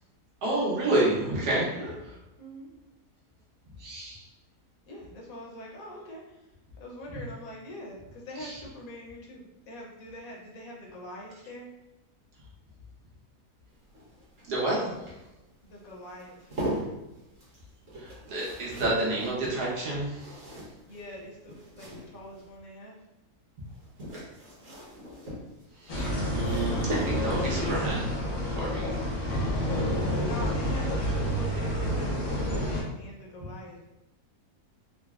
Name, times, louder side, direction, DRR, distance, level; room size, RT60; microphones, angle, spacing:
voice 1, 0.4-1.7 3.8-4.2 8.4-8.6 14.5-14.9 17.9-20.5 25.8-28.2 28.5-28.9, right 2 dB, 80° right, -5 dB, 1.5 m, -29 dB
voice 2, 2.4-2.7 4.9-6.5 6.8-11.7 15.6-16.6 20.9-23.0 30.2-33.9, equal, 70° left, -2 dB, 1.0 m, -44 dB
sound 1, 13.7-22.5 23.7-27.6 29.2-29.5 29.8-29.9, equal, 45° right, 1.1 m, -40 dB
sound 2, 25.9-32.8, equal, 50° left, 0.7 m, -29 dB
3.9 x 2.0 x 2.3 m, 0.96 s
omnidirectional pair, 1.7 m